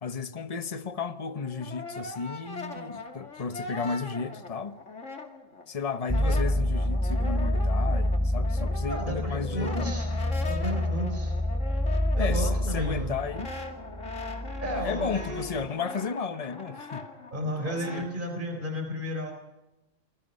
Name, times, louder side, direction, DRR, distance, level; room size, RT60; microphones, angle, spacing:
voice 1, 0.0-4.8 5.7-10.0 12.2-13.5 14.7-17.1 17.6-18.1, left 5 dB, 30° left, 1.1 m, -33 dB
Brass instrument, 1.2-5.7 5.9-18.1, left 3 dB, 70° left, 2.9 m, -41 dB
sound 1, 6.1-15.7, left 1 dB, 10° right, 2.6 m, -28 dB
voice 2, 8.9-10.1 10.5-11.3 12.1-13.1 14.6-15.7 17.3-19.3, equal, 40° right, 4.2 m, -33 dB
29.0 x 21.5 x 5.5 m
omnidirectional pair, 1.3 m